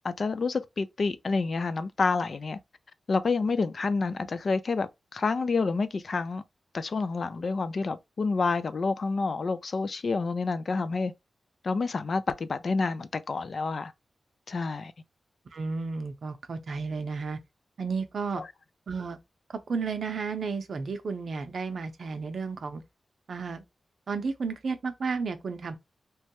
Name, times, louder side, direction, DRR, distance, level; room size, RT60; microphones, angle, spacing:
voice 1, 0.0-2.6 3.1-6.4 6.7-11.1 11.6-13.9 14.5-14.9 18.4-18.5, left 4 dB, 50° left, 0.3 m, -28 dB
voice 2, 15.5-17.4 17.8-18.4 18.9-19.2 19.5-22.8 23.3-23.6 24.1-25.8, right 4 dB, 65° right, 0.6 m, -32 dB
3.0 x 2.2 x 2.8 m
wide cardioid pair, 135°, 0 cm